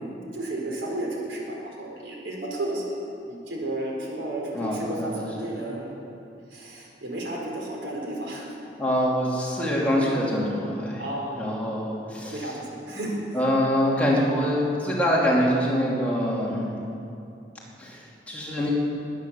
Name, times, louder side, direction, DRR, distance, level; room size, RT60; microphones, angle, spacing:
voice 1, 0.0-3.0 3.3-5.9 6.5-8.5 11.0-11.4 12.3-13.4, right 1 dB, 85° right, -2 dB, 4.3 m, -32 dB
voice 2, 4.5-5.3 8.8-11.0 11.4-12.5 12.9-13.0 13.3-16.8 17.8-18.7, equal, 10° left, -5 dB, 2.9 m, -25 dB
20.5 x 9.5 x 7.1 m, 2.6 s
head